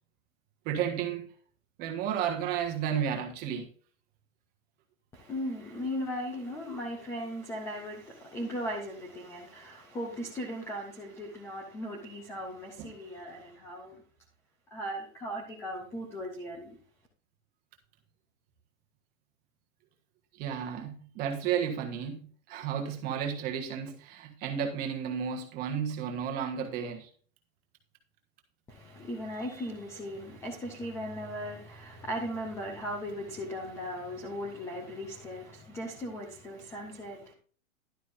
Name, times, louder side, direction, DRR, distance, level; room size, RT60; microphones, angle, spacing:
voice 1, 0.6-1.2 1.8-3.7 12.8-12.9 20.4-27.1, right 8 dB, 25° right, 1.4 m, -32 dB
voice 2, 5.1-14.0 14.7-16.7 28.7-37.3, equal, 5° left, 0.6 m, -38 dB
11.5 x 9.3 x 2.6 m
supercardioid pair, 170°, 40 cm